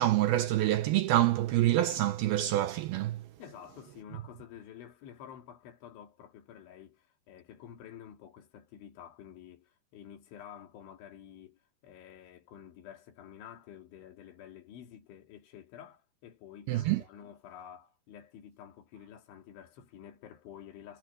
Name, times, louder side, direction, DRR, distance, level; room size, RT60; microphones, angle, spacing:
voice 1, 0.0-3.2 16.7-17.0, right 14 dB, 85° right, 2.2 m, -26 dB
voice 2, 3.4-21.0, left 9 dB, 85° left, 5.1 m, -50 dB
omnidirectional pair, 5.3 m